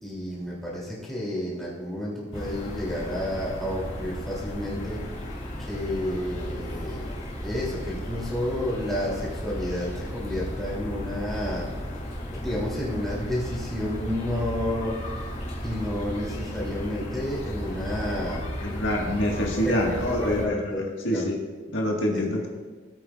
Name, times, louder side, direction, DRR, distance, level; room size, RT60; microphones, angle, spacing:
voice 1, 0.0-5.1 5.6-7.1 7.4-11.7 12.3-15.0 15.6-18.5 19.4-21.3 22.1-22.2, left 1 dB, ahead, -6 dB, 2.9 m, -31 dB
sound 1, 2.3-20.5, equal, 35° left, 2.6 m, -34 dB
voice 2, 18.6-20.6 21.0-21.3 21.7-22.5, left 1 dB, 70° left, -1 dB, 1.7 m, -26 dB
18.0 x 8.4 x 2.4 m, 1.3 s
head